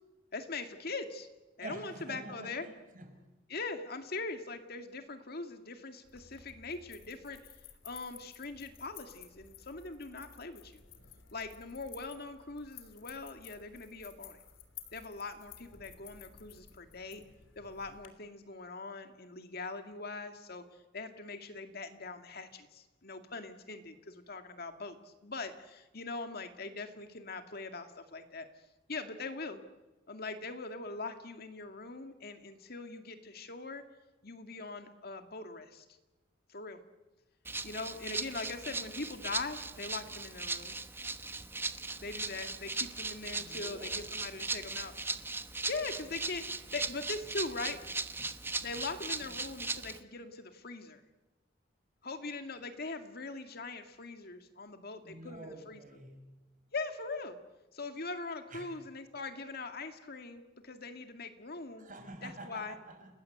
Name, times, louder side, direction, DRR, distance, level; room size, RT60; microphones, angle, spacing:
voice 1, 0.3-1.3 1.6-2.7 3.5-7.5 7.8-10.8 11.3-14.4 14.9-17.2 17.6-28.5 28.9-29.6 30.1-33.8 34.2-35.9 36.5-36.8 37.6-40.8 42.0-45.0 45.7-47.8 48.6-51.0 52.0-55.8 56.7-57.4 57.7-61.9 62.2-62.8, left 3 dB, 55° left, 7 dB, 2.2 m, -42 dB
voice 2, 1.6-3.1 43.3-44.0 55.0-56.3 58.5-58.7 61.8-63.1, right 2 dB, 45° right, 5 dB, 5.9 m, -47 dB
sound 1, 6.0-18.1, left 8 dB, 90° left, 3.3 m, -54 dB
Rattle (instrument), 37.4-50.0, right 3 dB, 10° right, 1.0 m, -38 dB
30.0 x 20.0 x 8.0 m, 1.1 s
head